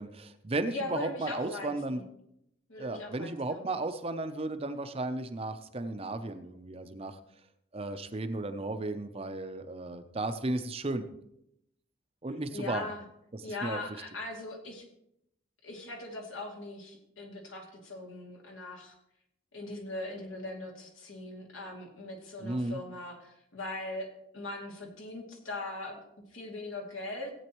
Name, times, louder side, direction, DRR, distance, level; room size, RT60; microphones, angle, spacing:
voice 1, 0.0-2.0 2.8-7.2 7.7-11.1 12.2-12.9 13.3-13.8 22.4-22.8, right 2 dB, 30° right, 9 dB, 0.6 m, -34 dB
voice 2, 0.7-2.0 2.7-3.8 12.5-13.0 13.4-14.9 15.6-18.9 19.5-24.1 24.3-26.0 26.3-27.3, left 2 dB, 80° left, 0 dB, 2.6 m, -40 dB
17.0 x 8.8 x 3.1 m, 0.79 s
head